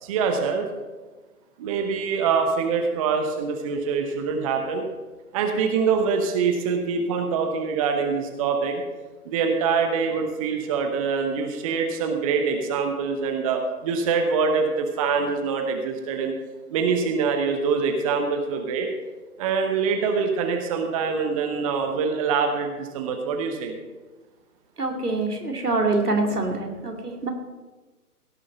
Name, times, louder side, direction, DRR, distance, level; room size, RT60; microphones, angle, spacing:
voice 1, 0.0-0.6 1.6-4.9 5.3-8.8 9.3-16.3 16.7-18.9 19.4-23.7, right 5 dB, 25° right, 4 dB, 0.9 m, -24 dB
voice 2, 24.8-27.3, right 2 dB, 85° right, 2 dB, 2.4 m, -25 dB
16.5 x 6.8 x 5.4 m, 1.2 s
figure-of-eight pair, 130°, 45 cm